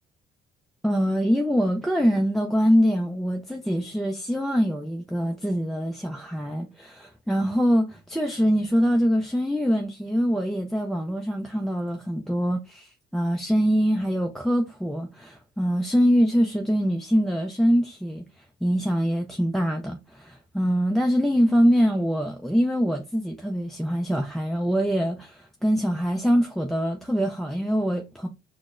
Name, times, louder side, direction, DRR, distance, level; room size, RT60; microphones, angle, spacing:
voice 1, 0.8-28.3, equal, ahead, 0.4 m, -24 dB
5.8 x 2.1 x 2.4 m
cardioid pair, 110°, 17 cm